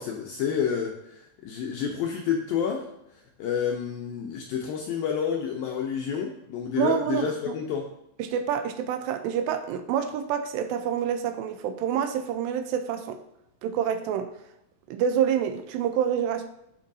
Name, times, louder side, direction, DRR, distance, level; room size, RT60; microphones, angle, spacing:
voice 1, 0.0-2.9 3.4-7.9, left 7 dB, 80° left, 2.1 m, -29 dB
voice 2, 6.8-7.6 8.2-13.2 13.6-14.3 14.9-16.5, right 8 dB, 85° right, 2.8 m, -27 dB
14.5 x 5.3 x 2.7 m
omnidirectional pair, 4.9 m